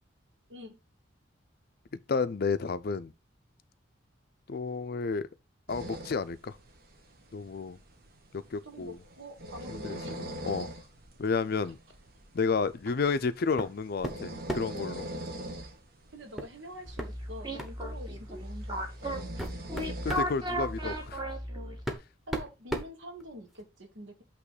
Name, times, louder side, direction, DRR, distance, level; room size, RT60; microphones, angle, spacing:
voice 1, 2.1-3.1 4.5-5.3 5.7-6.6 7.3-7.8 8.3-9.0 9.7-10.7 11.2-11.8 12.3-15.1 20.0-21.2, left 4 dB, 50° left, 0.5 m, -31 dB
sound 1, 5.7-21.1, right 1 dB, 50° right, 1.3 m, -44 dB
voice 2, 8.6-10.2 16.1-19.2 22.3-24.2, equal, 75° right, 1.5 m, -46 dB
sound 2, 13.6-13.8 14.0-14.8 16.4-16.5 17.0-17.1 17.6-17.8 18.6-18.7 19.2-20.3 21.4-21.5 21.8-23.6, right 1 dB, ahead, 1.1 m, -36 dB
sound 3, 16.9-22.0, equal, 25° right, 1.3 m, -36 dB
8.4 x 3.1 x 4.8 m
head